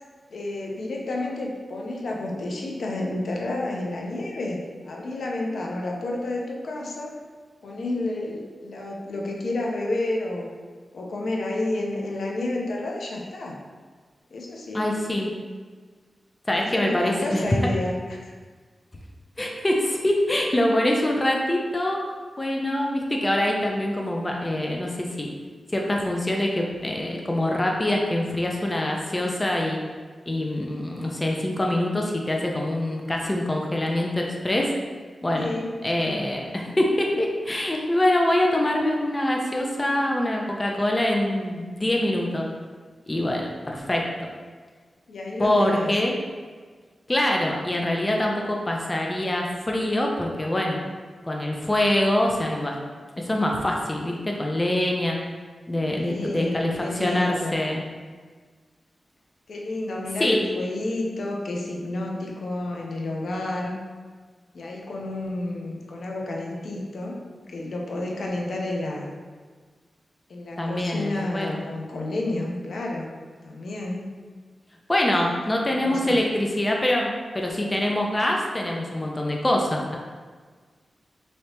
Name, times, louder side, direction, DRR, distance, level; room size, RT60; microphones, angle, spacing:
voice 1, 0.3-7.1 7.6-10.5 10.9-13.6 14.3-14.9 16.6-18.3 35.4-35.8 45.1-45.9 55.9-57.7 59.5-63.8 64.5-67.2 67.5-69.1 70.3-73.1 73.4-74.1 75.1-75.4 75.8-76.2, left 2 dB, 75° left, -1 dB, 0.5 m, -30 dB
voice 2, 14.7-15.3 16.5-17.4 19.4-22.0 22.4-25.3 25.7-29.8 30.3-34.7 35.2-35.5 35.8-42.5 43.1-44.1 45.4-46.1 47.1-50.8 51.3-52.8 53.2-55.2 55.7-57.8 60.2-60.4 70.6-71.6 74.9-80.0, left 1 dB, 20° left, 0 dB, 0.4 m, -24 dB
3.2 x 2.8 x 2.8 m, 1.5 s
wide cardioid pair, 100°, 0 cm